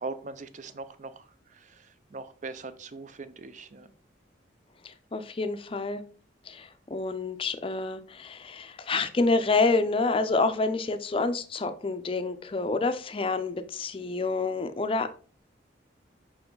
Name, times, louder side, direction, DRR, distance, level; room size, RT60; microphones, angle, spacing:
voice 1, 0.0-3.9, right 3 dB, 40° right, 0.5 m, -41 dB
voice 2, 4.8-6.0 6.5-15.2, left 3 dB, 30° left, 0.5 m, -28 dB
5.6 x 4.6 x 3.8 m
head